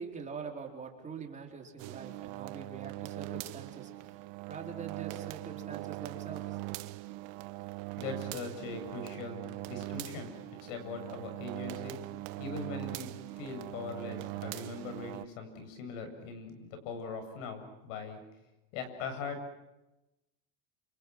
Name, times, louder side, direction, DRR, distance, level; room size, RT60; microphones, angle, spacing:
voice 1, 0.0-3.9 4.5-6.6, right 5 dB, 20° right, 1 dB, 4.2 m, -44 dB
sound 1, 1.8-15.3, right 18 dB, 55° right, 1.2 m, -41 dB
voice 2, 8.0-10.3 10.6-12.0 12.4-13.1 13.4-18.2 18.7-19.4, left 4 dB, 70° left, 7 dB, 7.7 m, -41 dB
29.5 x 28.5 x 6.2 m, 0.96 s
supercardioid pair, 155°, 40 cm